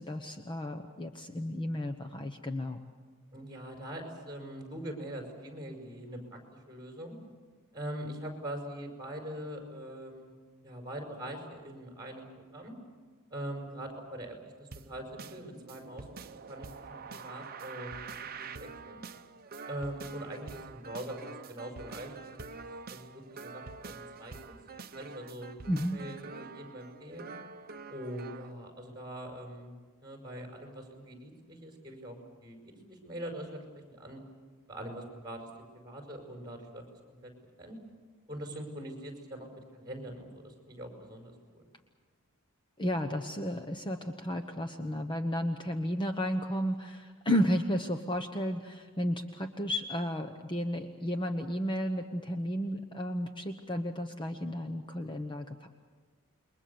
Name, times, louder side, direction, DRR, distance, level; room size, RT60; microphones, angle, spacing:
voice 1, 0.0-2.8 25.7-26.0 42.8-55.7, equal, 20° left, 6 dB, 1.0 m, -33 dB
voice 2, 3.3-7.2 7.7-10.3 10.6-12.7 13.3-18.0 18.4-19.0 19.7-22.6 22.9-24.5 24.9-25.5 25.9-27.3 27.9-34.2 34.7-35.5 35.8-37.3 37.6-37.8 38.3-41.6, right 1 dB, 20° right, 2 dB, 5.4 m, -43 dB
sound 1, 14.7-28.5, right 4 dB, 45° right, 0.8 m, -46 dB
28.5 x 22.5 x 7.0 m, 1.4 s
head